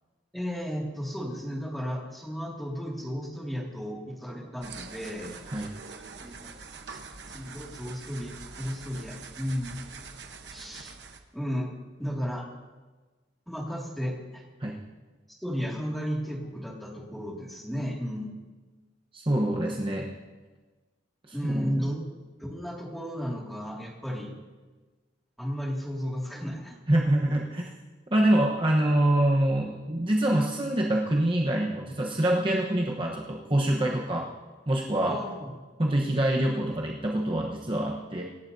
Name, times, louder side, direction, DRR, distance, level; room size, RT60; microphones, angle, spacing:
voice 1, 0.3-5.4 6.2-6.5 6.9-7.0 7.3-9.8 10.5-11.0 11.3-11.7 12.0-12.5 13.5-14.4 15.3-18.4 21.3-22.0 22.4-24.4 25.4-26.8 35.0-35.5, equal, ahead, -3 dB, 2.3 m, -34 dB
sound 1, 4.6-11.2, right 4 dB, 65° right, 1.1 m, -44 dB
voice 2, 19.1-20.1 21.3-21.9 26.9-27.7 28.1-34.3 34.7-35.2 35.8-38.2, right 1 dB, 30° right, -1 dB, 1.1 m, -25 dB
26.5 x 12.0 x 2.8 m, 1.3 s
head